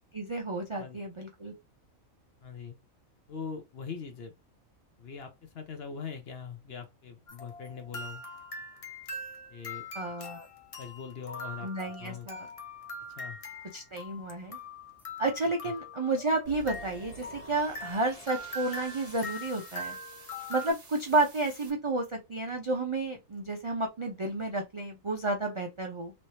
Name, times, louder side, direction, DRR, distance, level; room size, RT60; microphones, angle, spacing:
voice 1, 0.1-1.5 9.9-10.5 11.6-12.5 13.7-14.6 15.2-20.0 20.5-26.1, right 2 dB, 50° right, 0.3 m, -31 dB
voice 2, 2.4-2.8 3.3-4.3 5.0-8.2 9.5-9.8 10.2-10.3 10.8-11.7 12.0-12.3 13.2-13.4 15.6-15.7, left 6 dB, 55° left, 0.8 m, -41 dB
sound 1, 7.3-20.7, left 1 dB, 40° left, 0.5 m, -42 dB
sound 2, 16.5-21.7, right 4 dB, 35° right, 1.0 m, -50 dB
3.2 x 3.0 x 2.7 m
omnidirectional pair, 1.4 m